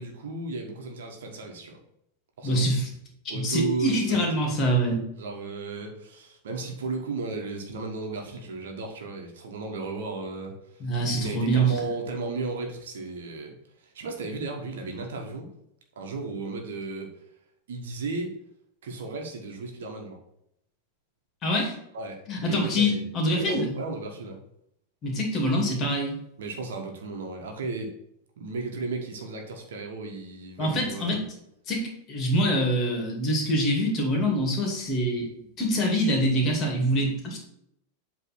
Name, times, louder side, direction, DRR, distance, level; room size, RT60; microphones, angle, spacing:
voice 1, 0.0-1.8 2.4-2.6 3.3-4.5 5.2-10.5 11.1-13.5 13.8-15.5 15.9-17.2 17.7-18.3 18.8-20.2 21.9-22.2 22.5-24.4 26.4-27.9 28.4-31.2, right 3 dB, 60° right, 2 dB, 1.4 m, -34 dB
voice 2, 2.4-2.9 3.3-5.0 10.8-11.7 21.4-21.7 22.3-23.7 25.0-26.1 30.6-31.2 31.7-35.3 35.6-37.4, equal, 30° left, 1 dB, 2.4 m, -25 dB
8.2 x 3.4 x 5.9 m, 0.77 s
figure-of-eight pair, 90°, 0 cm